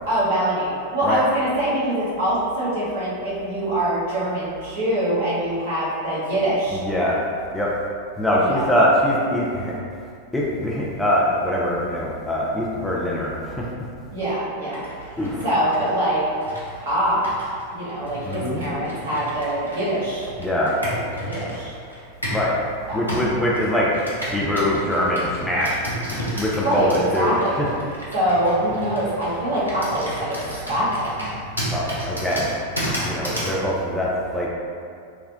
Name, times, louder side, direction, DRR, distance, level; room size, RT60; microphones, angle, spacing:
voice 1, 0.0-6.8 8.3-8.7 14.1-14.9 15.4-16.3 16.8-17.2 17.7-20.3 20.9-21.7 22.9-23.0 26.6-27.6 28.1-30.4 30.7-31.2, right 1 dB, 60° right, -9 dB, 1.1 m, -24 dB
voice 2, 6.8-7.2 7.5-7.7 8.2-9.7 10.3-13.7 15.2-15.4 18.2-18.7 20.4-20.7 22.3-22.6 22.9-23.9 24.3-27.3 27.6-27.7 31.7-32.5 33.0-34.5, equal, 5° left, -6 dB, 0.4 m, -23 dB
Computer keyboard, 14.7-22.5 23.1-33.6, equal, 90° left, 0.6 m, -33 dB
3.4 x 2.1 x 2.5 m, 2.3 s
figure-of-eight pair, 90°, 0 cm